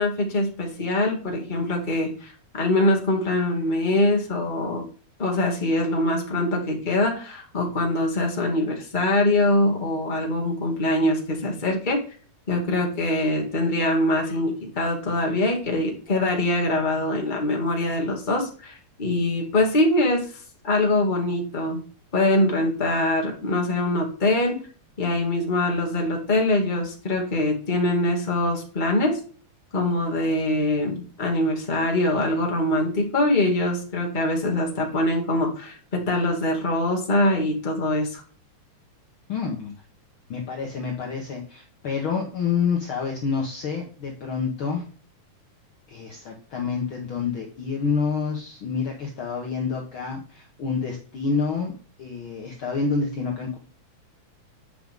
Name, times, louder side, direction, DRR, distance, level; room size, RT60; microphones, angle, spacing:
voice 1, 0.0-4.9 5.2-12.0 12.5-20.3 20.6-21.8 22.1-24.6 25.0-29.2 29.7-38.2, left 1 dB, 20° left, 0 dB, 1.9 m, -23 dB
voice 2, 39.3-39.7 40.3-44.8 45.9-51.7 52.0-53.6, left 5 dB, 55° left, 0 dB, 1.8 m, -28 dB
9.0 x 5.7 x 3.7 m, 0.40 s
omnidirectional pair, 3.3 m